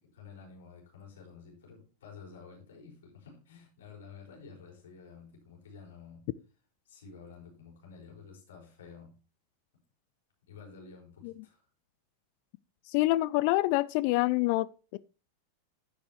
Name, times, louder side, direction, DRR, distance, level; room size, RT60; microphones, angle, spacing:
voice 1, 0.0-6.3 6.8-9.2 10.5-11.7, left 5 dB, 60° left, 4.8 m, -51 dB
voice 2, 12.9-15.0, left 18 dB, 45° left, 0.4 m, -27 dB
10.5 x 10.0 x 3.0 m
figure-of-eight pair, 90°, 0 cm